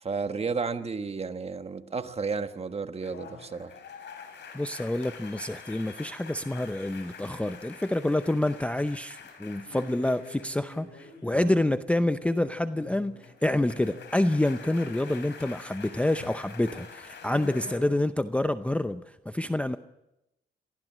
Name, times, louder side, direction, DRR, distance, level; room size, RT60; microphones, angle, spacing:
voice 1, 0.0-3.7 11.3-11.5, right 4 dB, 30° right, 1.4 m, -32 dB
sound 1, 3.0-11.8 12.0-17.8, left 5 dB, 65° left, 4.5 m, -46 dB
voice 2, 4.5-19.8, left 1 dB, 5° left, 0.6 m, -27 dB
23.5 x 15.5 x 7.4 m
cardioid pair, 90°, 20 cm